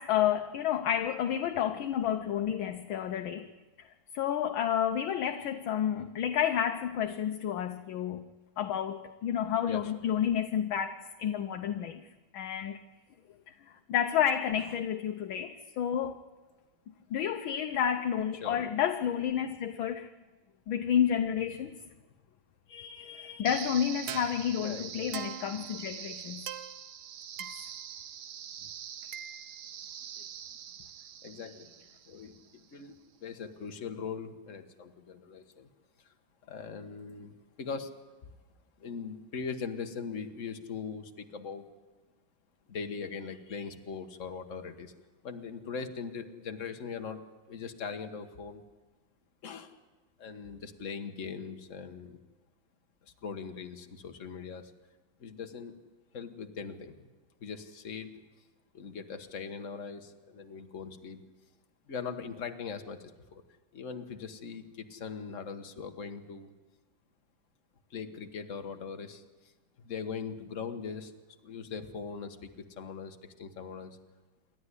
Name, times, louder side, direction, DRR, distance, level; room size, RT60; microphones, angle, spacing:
voice 1, 0.0-3.5 3.8-3.9 4.1-8.2 8.6-12.1 12.3-12.8 13.5-16.2 17.1-20.1 20.7-21.7 22.7-26.5, left 9 dB, 70° left, 1.6 m, -30 dB
sound 1, 23.5-32.5, right 9 dB, 85° right, 1.9 m, -42 dB
voice 2, 24.6-25.1 31.2-31.7 32.1-35.7 36.0-36.1 36.4-38.0 38.8-41.7 42.7-44.9 45.2-47.2 47.5-48.6 49.4-49.7 50.2-52.2 53.0-54.7 55.2-55.7 56.1-57.1 57.4-58.2 58.7-61.2 61.9-63.4 63.7-66.5 67.9-69.5 69.8-71.1 71.4-74.0, left 5 dB, 40° left, 1.5 m, -41 dB
28.0 x 12.5 x 9.8 m
omnidirectional pair, 2.3 m